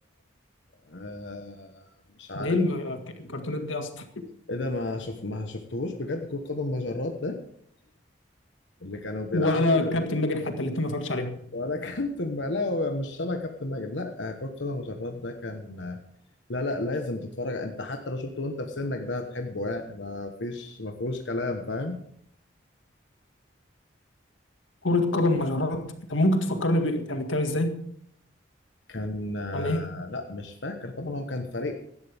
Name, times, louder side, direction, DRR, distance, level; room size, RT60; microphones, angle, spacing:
voice 1, 0.9-1.9 2.2-2.6 4.5-7.4 8.8-10.0 11.5-16.0 16.5-22.0 28.9-31.8, left 2 dB, 70° left, 4 dB, 1.2 m, -32 dB
voice 2, 2.3-3.9 9.3-11.4 24.8-27.8 29.5-29.9, left 1 dB, 90° left, 6 dB, 1.9 m, -26 dB
17.5 x 12.5 x 3.6 m, 0.67 s
head